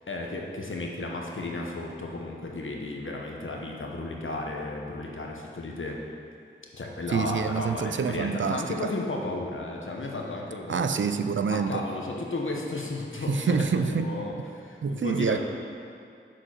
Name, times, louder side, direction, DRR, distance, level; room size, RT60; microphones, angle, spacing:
voice 1, 0.0-6.0 6.7-10.9 11.5-15.4, left 2 dB, 75° left, 0 dB, 1.0 m, -34 dB
voice 2, 7.1-8.9 10.7-11.8 13.3-14.1 14.8-15.4, right 6 dB, 70° right, 9 dB, 0.4 m, -27 dB
6.2 x 4.7 x 6.2 m, 2.4 s
wide cardioid pair, 45°, 21 cm